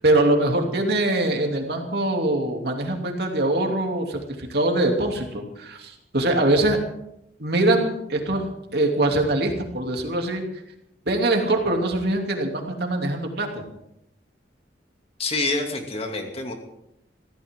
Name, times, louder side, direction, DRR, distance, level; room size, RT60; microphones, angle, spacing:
voice 1, 0.0-6.8 7.4-8.4 8.7-10.4 11.1-13.6, right 1 dB, 65° right, 2 dB, 3.0 m, -23 dB
voice 2, 15.2-16.5, left 2 dB, 35° left, 3 dB, 2.7 m, -27 dB
24.0 x 15.5 x 3.8 m, 0.80 s
head